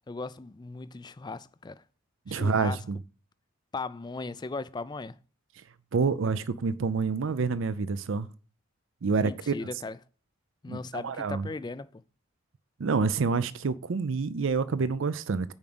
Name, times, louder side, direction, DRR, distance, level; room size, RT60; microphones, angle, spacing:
voice 1, 0.1-1.8 2.3-2.8 3.7-5.2 9.2-10.0 10.6-12.0, left 3 dB, 20° left, 0.3 m, -37 dB
voice 2, 2.3-3.0 5.9-8.3 9.0-9.5 10.7-11.5 12.8-15.5, right 4 dB, 65° right, 0.5 m, -28 dB
7.1 x 5.1 x 6.1 m
head